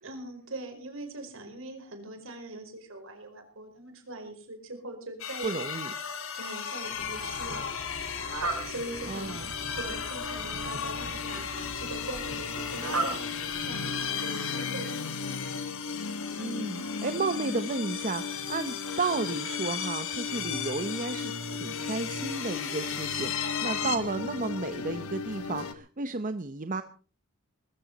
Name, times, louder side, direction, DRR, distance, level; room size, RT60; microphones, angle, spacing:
voice 1, 0.0-5.5 6.3-7.7 8.6-9.4 9.7-13.2 13.6-15.4, right 2 dB, 65° right, 5 dB, 4.9 m, -41 dB
sound 1, 5.2-24.0, left 8 dB, 65° left, 2.5 m, -36 dB
voice 2, 5.4-5.9 9.1-9.5 16.4-26.8, right 3 dB, 40° right, 10 dB, 0.8 m, -33 dB
Fowl, 6.8-14.2, right 2 dB, 85° right, 5.0 m, -38 dB
sound 2, 7.3-25.7, left 4 dB, 85° left, 1.3 m, -38 dB
20.5 x 14.0 x 4.1 m, 0.38 s
head